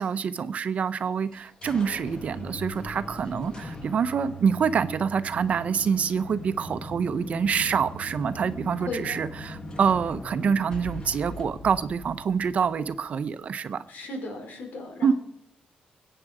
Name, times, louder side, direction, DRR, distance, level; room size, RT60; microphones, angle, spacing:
voice 1, 0.0-13.8 15.0-15.1, right 6 dB, 55° right, 12 dB, 0.7 m, -26 dB
sound 1, 1.3-13.0, left 1 dB, 30° left, 1.5 m, -40 dB
voice 2, 8.9-9.2 13.9-15.1, left 2 dB, 80° left, 3 dB, 4.0 m, -36 dB
22.5 x 8.9 x 4.9 m, 0.70 s
cardioid pair, 125°, 3 cm